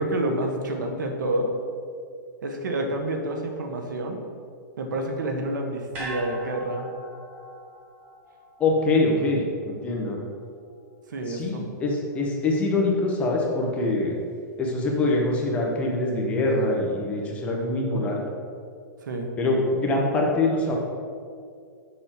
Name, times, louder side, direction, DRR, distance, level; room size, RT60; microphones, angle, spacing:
voice 1, 0.0-1.6 2.4-4.2 4.8-6.9 11.1-11.7 19.0-19.3, right 1 dB, 80° right, 3 dB, 1.4 m, -28 dB
sound 1, 5.9-10.3 10.6-10.7, equal, 15° right, 1.6 m, -41 dB
voice 2, 8.6-10.2 11.3-14.2 14.6-18.2 19.4-20.8, left 2 dB, 10° left, -1 dB, 0.9 m, -24 dB
6.7 x 6.3 x 5.8 m, 2.3 s
hypercardioid pair, 175°, 10 cm